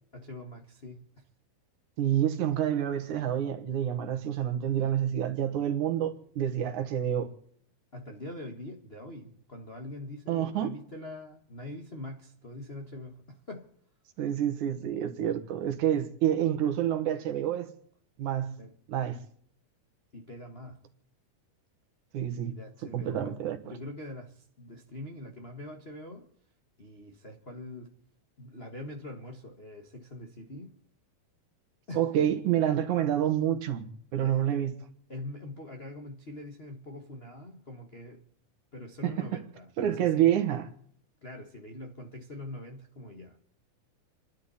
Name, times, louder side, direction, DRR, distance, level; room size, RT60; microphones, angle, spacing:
voice 1, 0.1-1.2 7.9-13.7 18.6-18.7 20.1-20.8 22.4-26.3 26.8-27.9 28.4-30.7 31.9-32.1 34.2-34.6 35.1-38.2 38.7-40.4 41.2-43.4, left 1 dB, 90° left, 0.5 m, -43 dB
voice 2, 2.0-7.3 10.3-10.7 14.2-17.7 18.2-18.5 18.9-19.2 22.1-22.5 22.9-23.6 31.9-34.7 39.0-39.3 39.8-40.7, right 10 dB, 65° right, 2.7 m, -28 dB
29.5 x 12.0 x 4.2 m
omnidirectional pair, 3.8 m